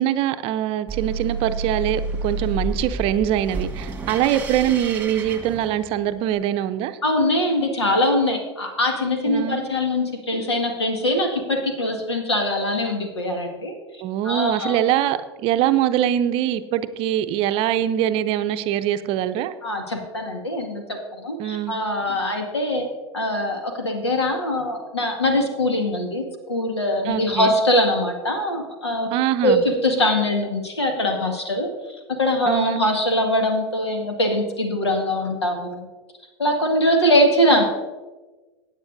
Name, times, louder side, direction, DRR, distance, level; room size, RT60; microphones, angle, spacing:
voice 1, 0.0-7.0 9.3-9.6 14.0-19.5 21.4-21.8 27.1-27.5 29.1-29.6 32.5-32.8, right 11 dB, 45° right, 11 dB, 0.6 m, -23 dB
sound 1, 0.9-6.2, right 3 dB, 10° right, 1.7 m, -30 dB
voice 2, 7.0-13.7 14.2-14.8 19.6-22.8 23.1-26.2 26.5-29.1 29.4-31.7 32.2-35.9 36.4-37.6, left 1 dB, 85° left, 3 dB, 1.9 m, -22 dB
16.5 x 8.9 x 2.6 m, 1.3 s
figure-of-eight pair, 90°, 14 cm